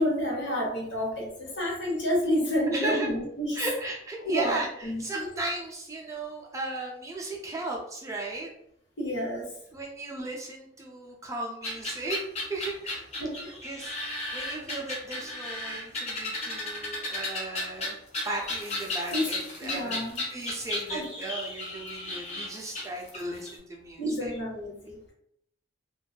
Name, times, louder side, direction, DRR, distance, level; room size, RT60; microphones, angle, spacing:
voice 1, 0.0-3.6 4.2-4.6 4.8-5.3 9.0-9.6 13.2-13.5 17.1-17.4 18.2-18.3 19.1-19.3 19.6-20.2 20.9-21.1 24.0-25.0, equal, 75° left, -3 dB, 1.0 m, -29 dB
voice 2, 2.7-3.1 3.6-8.5 9.7-13.1 13.6-18.0 18.2-20.0 20.3-24.4, right 2 dB, 15° right, -1 dB, 0.3 m, -36 dB
sound 1, 11.6-23.5, left 2 dB, 35° left, 0.5 m, -34 dB
2.6 x 2.2 x 2.2 m, 0.74 s
head